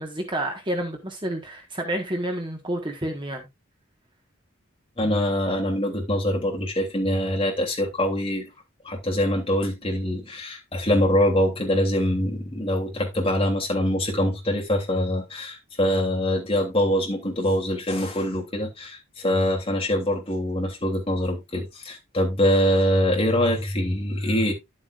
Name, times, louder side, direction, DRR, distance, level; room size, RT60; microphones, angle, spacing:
voice 1, 0.0-3.5, right 1 dB, 20° right, 1.5 m, -29 dB
voice 2, 5.0-8.5 8.8-24.5, left 1 dB, 25° left, 3.1 m, -24 dB
11.5 x 7.6 x 2.5 m
head